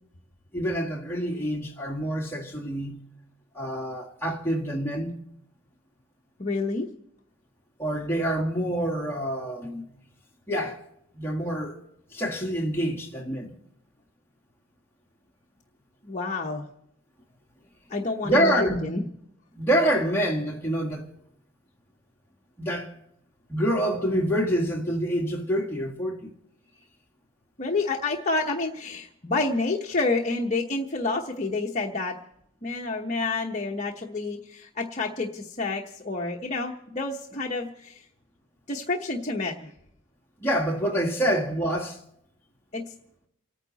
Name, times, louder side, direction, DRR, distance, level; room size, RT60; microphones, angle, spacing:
voice 1, 0.5-3.0 3.5-5.1 7.8-9.8 10.5-10.8 11.1-11.8 12.1-13.5 18.2-18.9 19.6-21.1 22.6-23.0 23.5-26.3 40.4-42.0, equal, 10° left, 1.9 m, -26 dB
voice 2, 6.4-6.9 16.0-16.7 17.9-19.1 27.6-32.1 32.6-38.0 38.7-39.7 42.7-42.8, left 3 dB, 35° left, 1.0 m, -29 dB
29.0 x 9.7 x 4.1 m
head